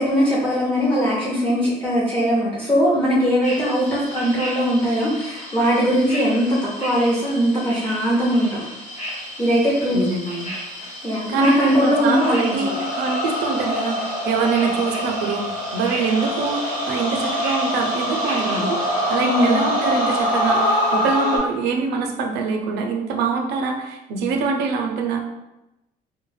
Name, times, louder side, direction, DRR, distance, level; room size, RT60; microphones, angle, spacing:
voice 1, 0.0-8.6 9.4-10.0 11.0-12.7 19.2-19.7, equal, 10° left, -6 dB, 0.6 m, -20 dB
sound 1, 3.4-19.2, equal, 45° left, 1.0 m, -35 dB
voice 2, 9.9-10.5 11.3-25.2, right 5 dB, 85° right, 2 dB, 0.5 m, -24 dB
sound 2, 11.8-21.4, equal, 80° left, 1.3 m, -24 dB
2.2 x 2.0 x 3.2 m, 0.95 s
cardioid pair, 110°, 17 cm